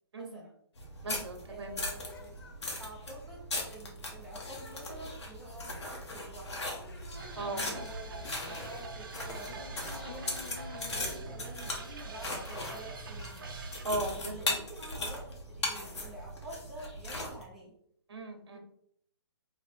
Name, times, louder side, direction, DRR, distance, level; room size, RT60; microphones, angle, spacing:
voice 1, 0.1-0.5 1.5-2.4 2.8-6.7 7.4-10.4 10.9-13.5 14.1-17.8 18.5-18.6, right 1 dB, ahead, -7 dB, 0.6 m, -49 dB
sound 1, 0.7-8.8 9.2-12.9, left 3 dB, 55° left, 0.7 m, -51 dB
sound 2, 0.8-17.4, left 2 dB, 90° left, 1.5 m, -39 dB
voice 2, 1.0-1.7 7.4-7.6 13.8-14.6 18.1-18.6, right 2 dB, 70° right, 4 dB, 1.1 m, -37 dB
sound 3, 7.1-13.8, right 3 dB, 50° right, 0.7 m, -45 dB
3.3 x 3.2 x 4.2 m, 0.70 s
hypercardioid pair, 170°, 14 cm